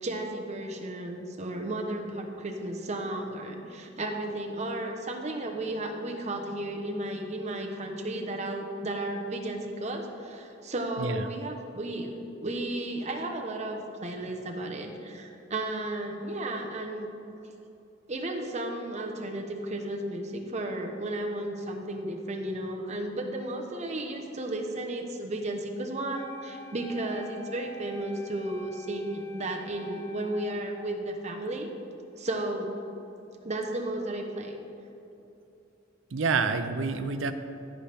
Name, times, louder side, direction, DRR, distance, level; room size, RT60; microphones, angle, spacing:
voice 1, 0.0-17.1 18.1-31.7 32.2-32.7 33.4-34.6, right 1 dB, 35° right, 2 dB, 0.9 m, -34 dB
Wind instrument woodwind instrument, 26.1-31.2, equal, 15° left, 0.5 m, -47 dB
voice 2, 36.1-37.3, right 4 dB, 85° right, 9 dB, 0.6 m, -28 dB
15.5 x 5.8 x 3.5 m, 2.8 s
head